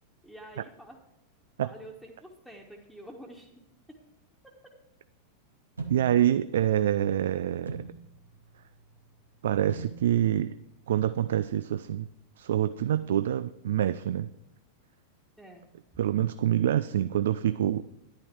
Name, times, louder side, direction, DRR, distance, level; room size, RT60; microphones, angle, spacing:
voice 1, 0.2-1.0 1.6-3.5 15.4-15.7, right 1 dB, ahead, -3 dB, 1.4 m, -47 dB
sound 1, 5.8-11.8, right 4 dB, 75° right, 1.2 m, -45 dB
voice 2, 5.9-7.8 9.4-10.5 10.9-12.1 12.4-14.3 16.0-17.8, right 11 dB, 60° right, 14 dB, 0.3 m, -26 dB
11.0 x 10.5 x 4.6 m, 0.89 s
figure-of-eight pair, 90°, 0 cm